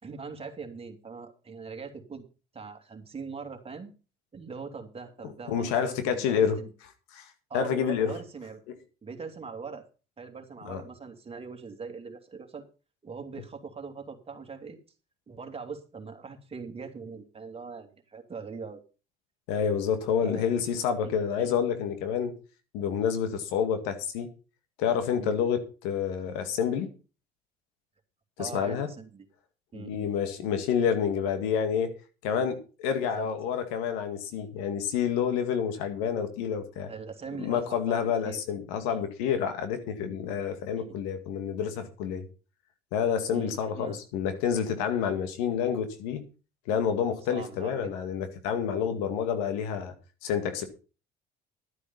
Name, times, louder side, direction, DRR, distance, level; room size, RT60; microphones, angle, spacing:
voice 1, 0.0-2.2 2.5-3.9 4.3-6.7 7.5-8.6 9.0-9.8 10.2-12.6 13.0-14.8 15.3-18.8 20.2-20.5 21.4-21.5 25.2-25.4 28.4-29.3 29.7-30.1 33.0-33.3 36.9-38.4 38.9-39.1 40.8-40.9 43.3-44.0 47.3-47.9, right 5 dB, 30° right, 4 dB, 2.8 m, -41 dB
voice 2, 5.5-6.6 7.1-8.1 10.6-10.8 19.5-22.3 22.7-24.3 24.8-26.9 28.4-28.9 29.7-31.9 32.2-36.9 37.4-42.3 42.9-46.2 46.7-49.9 50.2-50.7, left 7 dB, 90° left, 8 dB, 2.1 m, -28 dB
12.5 x 8.2 x 5.5 m, 0.34 s
supercardioid pair, 85°, 20 cm